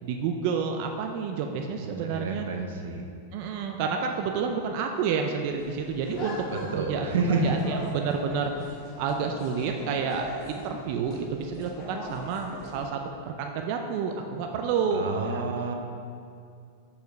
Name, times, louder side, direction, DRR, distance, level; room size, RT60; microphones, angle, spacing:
voice 1, 0.0-2.5 3.3-6.4 6.7-7.1 7.4-8.5 9.0-15.4, right 6 dB, 40° right, 3 dB, 0.3 m, -29 dB
voice 2, 1.8-3.0 6.5-7.4 14.9-15.7, right 5 dB, 85° right, 3 dB, 0.7 m, -30 dB
sound 1, 5.5-12.9, left 1 dB, 30° left, 0.9 m, -40 dB
4.9 x 4.8 x 4.5 m, 2.4 s
supercardioid pair, 170°, 0 cm